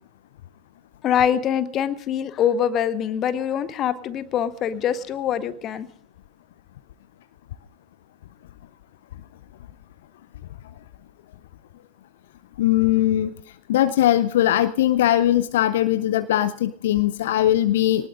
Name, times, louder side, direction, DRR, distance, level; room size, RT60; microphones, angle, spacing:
voice 1, 1.0-5.9, left 9 dB, 30° left, 15 dB, 1.0 m, -24 dB
voice 2, 12.6-13.3 13.7-18.1, left 13 dB, 55° left, 12 dB, 0.6 m, -20 dB
25.5 x 19.0 x 2.5 m, 0.62 s
figure-of-eight pair, 90°, 0 cm